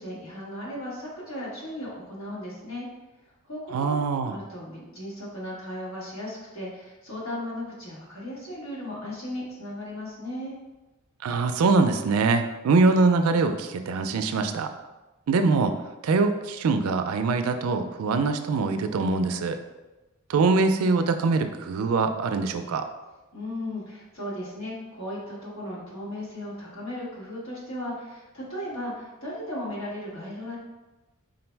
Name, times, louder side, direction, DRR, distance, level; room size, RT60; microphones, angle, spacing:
voice 1, 0.0-2.9 3.4-4.0 4.3-10.5 23.3-30.6, left 1 dB, 85° left, -6 dB, 1.4 m, -36 dB
voice 2, 3.7-4.4 11.2-14.7 15.3-15.7 16.0-19.6 20.3-22.8, right 3 dB, 85° right, 8 dB, 0.4 m, -23 dB
3.8 x 2.0 x 4.4 m, 1.1 s
head